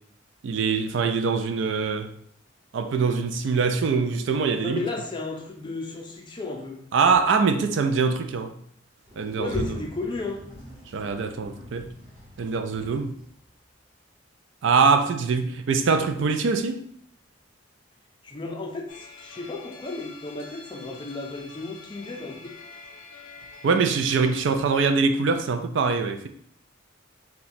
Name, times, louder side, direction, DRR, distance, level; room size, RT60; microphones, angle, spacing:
voice 1, 0.4-2.1 2.7-4.8 6.9-8.5 9.2-9.8 10.9-11.9 12.4-13.1 14.6-16.8 23.6-26.3, right 5 dB, 65° right, 0.3 m, -23 dB
voice 2, 4.6-6.8 9.4-10.4 18.2-22.6, left 3 dB, 25° left, 0.4 m, -34 dB
Sliding door, 9.0-13.5, equal, 20° right, 1.4 m, -41 dB
sound 1, 18.9-24.5, left 4 dB, 80° left, 0.5 m, -46 dB
2.8 x 2.2 x 4.0 m
head